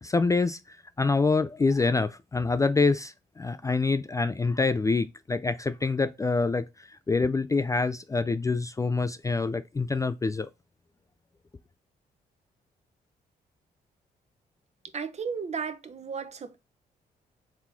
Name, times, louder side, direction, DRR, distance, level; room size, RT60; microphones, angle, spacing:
voice 1, 0.0-10.5, left 4 dB, 20° left, 0.3 m, -26 dB
voice 2, 14.9-16.6, right 6 dB, 40° right, 0.7 m, -34 dB
4.0 x 3.0 x 3.4 m
cardioid pair, 75°, 17 cm